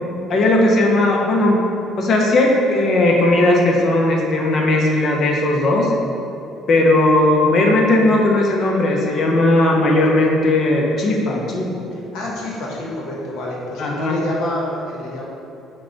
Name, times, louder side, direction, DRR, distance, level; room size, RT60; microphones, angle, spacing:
voice 1, 0.3-1.6 2.0-5.9 6.7-11.8 13.8-14.2, left 2 dB, 45° left, -1 dB, 0.7 m, -17 dB
voice 2, 12.1-15.2, left 1 dB, 75° left, -3 dB, 1.0 m, -27 dB
4.9 x 2.3 x 4.4 m, 2.7 s
cardioid pair, 130°, 0 cm